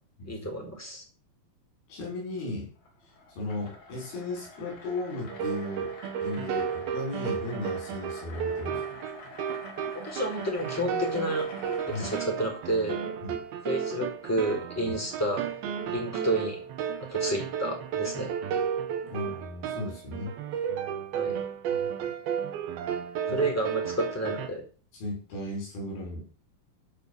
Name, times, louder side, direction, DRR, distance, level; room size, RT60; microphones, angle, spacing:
voice 1, 0.3-1.0 10.0-11.5 11.9-13.1 13.6-15.5 15.9-16.6 17.1-18.3 21.1-21.4 23.3-24.6, right 1 dB, 5° left, 0 dB, 4.0 m, -30 dB
voice 2, 1.9-2.7 3.3-5.9 6.2-8.8 11.9-12.1 13.2-13.4 14.9-15.0 19.1-20.3 21.3-21.4 21.7-21.9 23.3-23.5 24.9-26.2, left 2 dB, 90° left, -1 dB, 7.3 m, -36 dB
sound 1, 2.8-12.2, left 3 dB, 70° left, 4.5 m, -46 dB
sound 2, 5.3-24.5, right 7 dB, 85° right, 3.0 m, -33 dB
12.5 x 5.6 x 6.9 m, 0.39 s
omnidirectional pair, 4.2 m